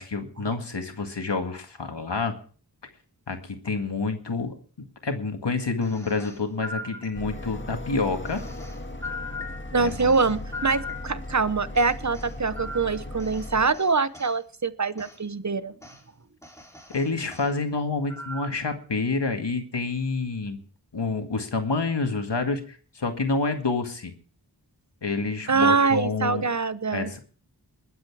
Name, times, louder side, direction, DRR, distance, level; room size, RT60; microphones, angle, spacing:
voice 1, 0.0-2.3 3.3-4.5 5.0-8.4 9.8-10.4 16.9-20.6 20.9-24.1 25.0-26.5 26.9-27.2, left 3 dB, 80° left, 5 dB, 1.9 m, -28 dB
sound 1, 5.8-7.6 8.2-11.4 11.7-14.4 15.0-15.2 15.8-16.0 16.4-17.5 18.1-18.7, left 2 dB, 5° left, 3.5 m, -40 dB
sound 2, 7.1-13.7, left 1 dB, 30° left, 1.7 m, -37 dB
voice 2, 9.7-15.7 25.5-27.1, right 4 dB, 45° right, 14 dB, 0.9 m, -24 dB
21.0 x 8.1 x 4.8 m, 0.43 s
wide cardioid pair, 55°, 41 cm